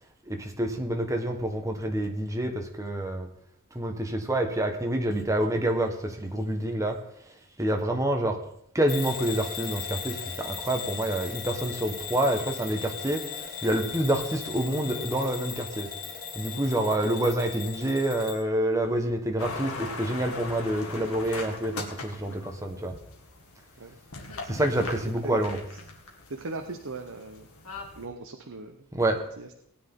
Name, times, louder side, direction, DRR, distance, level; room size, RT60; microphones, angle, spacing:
voice 1, 0.3-3.3 3.7-7.0 7.6-8.4 8.7-15.9 16.3-22.9 24.4-25.6 28.9-29.2, right 1 dB, 15° right, 3 dB, 1.5 m, -27 dB
Bell / Alarm, 8.9-18.4, left 6 dB, 45° left, 2.3 m, -38 dB
sound 1, 19.4-28.1, left 3 dB, 80° left, 2.2 m, -40 dB
voice 2, 25.2-25.6 26.3-27.5 28.0-28.9 29.4-29.6, right 3 dB, 65° right, 5 dB, 0.9 m, -39 dB
19.0 x 9.7 x 3.8 m, 0.72 s
head